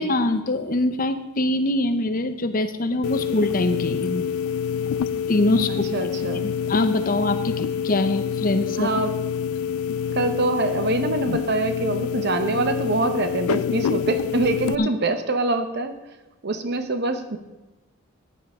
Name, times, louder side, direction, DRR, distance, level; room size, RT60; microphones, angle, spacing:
voice 1, 0.0-4.3 5.3-5.9 6.4-8.9 14.8-14.9, left 2 dB, 40° left, 9 dB, 0.7 m, -23 dB
sound 1, 3.0-14.8, left 7 dB, 75° left, 0.3 m, -26 dB
voice 2, 5.9-6.5 8.8-9.1 10.1-15.9 16.4-17.4, right 2 dB, 50° right, 8 dB, 0.9 m, -24 dB
14.5 x 9.8 x 3.7 m, 1.1 s
head